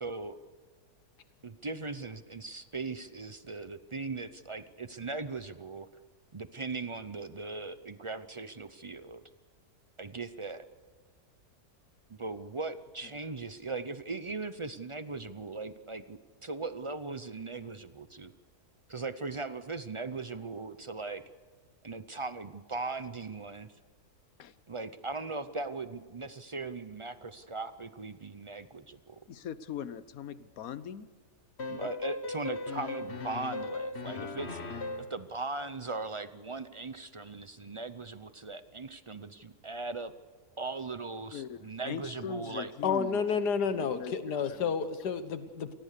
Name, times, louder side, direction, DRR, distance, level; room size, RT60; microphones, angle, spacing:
voice 1, 0.0-0.4 1.4-5.9 6.3-9.2 10.0-10.7 12.1-18.3 18.9-21.2 21.8-23.7 24.7-29.2 31.7-34.6 35.1-40.1 40.6-42.7, right 3 dB, 50° right, 12 dB, 0.3 m, -39 dB
voice 2, 29.3-31.1 31.8-31.9 41.3-43.2 43.9-44.2 44.4-44.7, left 9 dB, 65° left, 15 dB, 1.3 m, -41 dB
sound 1, 31.6-35.2, left 3 dB, 40° left, 1.6 m, -37 dB
voice 3, 42.8-45.7, left 6 dB, 80° left, 10 dB, 2.0 m, -30 dB
27.5 x 19.5 x 6.7 m, 1.5 s
omnidirectional pair, 1.7 m